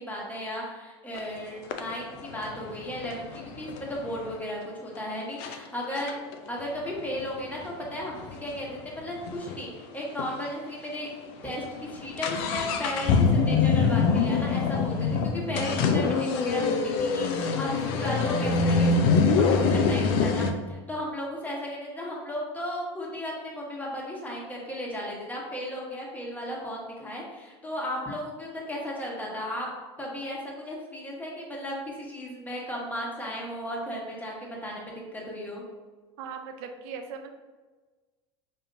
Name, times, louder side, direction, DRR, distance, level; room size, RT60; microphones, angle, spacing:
voice 1, 0.1-6.2 6.5-29.7 30.0-35.6, equal, 10° left, -3 dB, 1.3 m, -35 dB
sound 1, 1.1-1.3 1.7-4.4 5.0-5.1 5.4-5.6 6.0-9.6 9.9-10.0 10.2-10.3 10.9-11.1 11.4-20.5, left 4 dB, 60° left, 0.5 m, -25 dB
voice 2, 36.2-37.3, right 6 dB, 65° right, 5 dB, 0.6 m, -39 dB
5.3 x 2.7 x 2.6 m, 1.3 s
hypercardioid pair, 90°, 15 cm